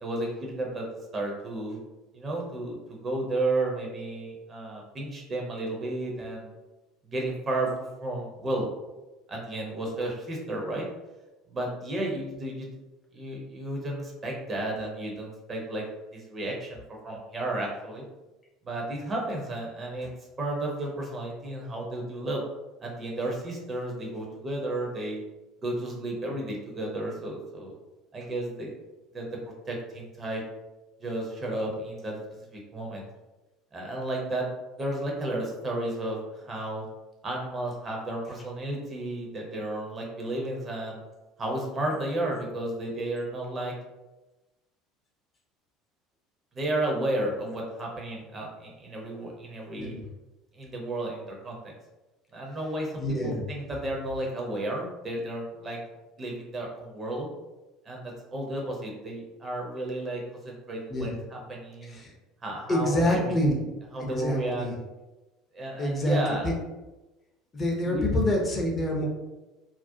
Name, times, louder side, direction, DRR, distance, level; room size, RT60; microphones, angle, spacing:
voice 1, 0.0-0.9 1.1-1.8 2.1-6.5 7.1-8.7 9.3-10.8 11.5-12.7 13.1-15.8 16.1-18.0 18.6-20.1 20.4-22.4 22.8-25.2 25.6-27.7 28.1-28.7 29.1-29.4 29.7-30.4 31.0-32.2 32.5-33.0 33.7-34.5 34.8-36.9 37.2-41.0 41.4-43.7 46.5-50.0 50.5-51.7 52.3-55.8 56.2-57.3 57.9-62.0 62.4-63.3 63.9-64.7 65.5-66.5 67.8-68.0, right 1 dB, 30° right, -1 dB, 0.6 m, -32 dB
voice 2, 53.0-53.4 60.9-61.1 61.9-62.1 62.7-63.5 64.0-64.7 65.8-66.5 67.5-69.0, left 1 dB, 30° left, 0 dB, 0.5 m, -26 dB
2.4 x 2.1 x 2.6 m, 1.1 s
figure-of-eight pair, 65°, 0 cm